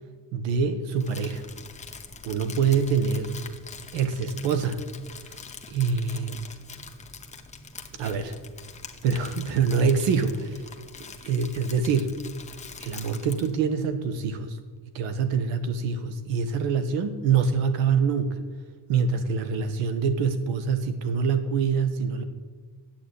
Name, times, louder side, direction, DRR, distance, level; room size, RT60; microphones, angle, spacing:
voice 1, 0.3-1.4 2.2-3.4 3.9-4.9 5.7-6.4 7.9-8.3 9.0-10.6 11.0-12.2 12.8-14.6 14.9-18.4 18.9-22.2, right 5 dB, 80° right, 10 dB, 1.5 m, -25 dB
Crumpling crinkling, 1.0-13.6, left 4 dB, 15° left, 0.8 m, -44 dB
10.5 x 8.5 x 8.5 m, 1.5 s
cardioid pair, 145°, 45 cm